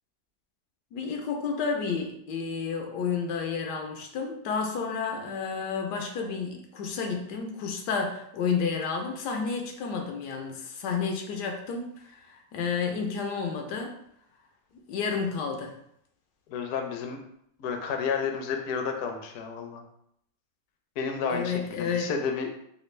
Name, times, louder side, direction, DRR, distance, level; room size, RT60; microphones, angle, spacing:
voice 1, 0.9-13.9 14.9-15.7 21.3-22.1, left 5 dB, 85° left, 3 dB, 1.2 m, -31 dB
voice 2, 16.5-17.2 17.6-19.8 21.0-22.5, left 6 dB, 70° left, 4 dB, 0.9 m, -31 dB
3.4 x 2.4 x 3.1 m, 0.72 s
omnidirectional pair, 1.8 m